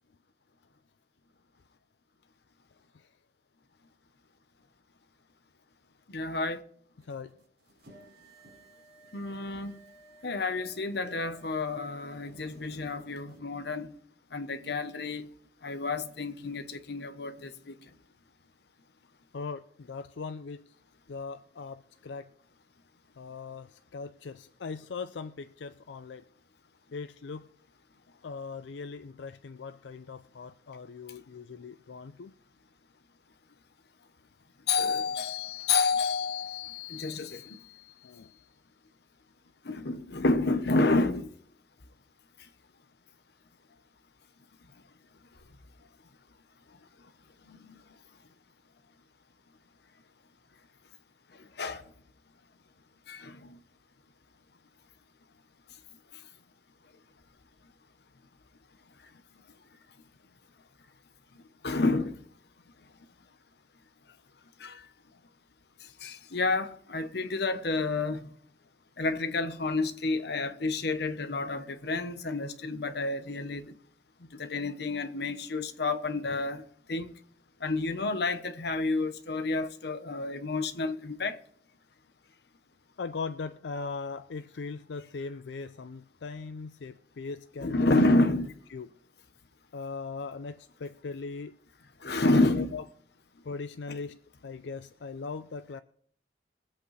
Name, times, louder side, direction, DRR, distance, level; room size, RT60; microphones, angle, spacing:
voice 1, 6.1-6.6 9.1-9.7 10.2-13.9 14.3-15.3 15.6-17.7 34.7-37.6 39.7-41.3 51.6-51.8 53.1-53.4 61.6-62.1 64.6-64.8 66.0-68.3 69.0-73.7 74.4-76.6 76.9-77.1 77.6-81.4 87.6-88.5 92.0-92.8, left 3 dB, 65° left, 1.0 m, -29 dB
sound 1, 7.0-13.4, right 1 dB, 85° right, 4.5 m, -56 dB
voice 2, 19.3-20.7 21.1-22.3 23.2-26.2 26.9-27.5 28.2-32.3 38.0-38.3 83.0-88.0 88.7-88.9 89.7-91.6 92.2-92.8 93.4-95.8, left 4 dB, 85° left, 0.5 m, -40 dB
22.0 x 8.2 x 3.3 m
head